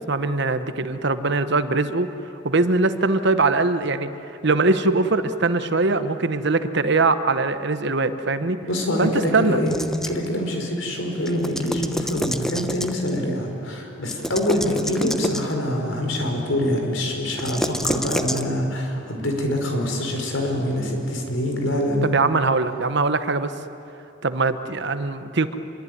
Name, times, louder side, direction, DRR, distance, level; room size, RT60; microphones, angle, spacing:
voice 1, 0.1-2.1 2.4-8.6 9.0-9.6 22.1-23.5 24.2-25.6, right 3 dB, 60° right, 11 dB, 1.1 m, -22 dB
voice 2, 8.6-9.7 10.1-22.1, left 1 dB, 85° left, 3 dB, 5.1 m, -25 dB
sound 1, 9.7-10.3 11.3-13.2 14.0-15.6 17.3-18.4, equal, ahead, 0.9 m, -28 dB
26.5 x 22.5 x 9.5 m, 2.9 s
head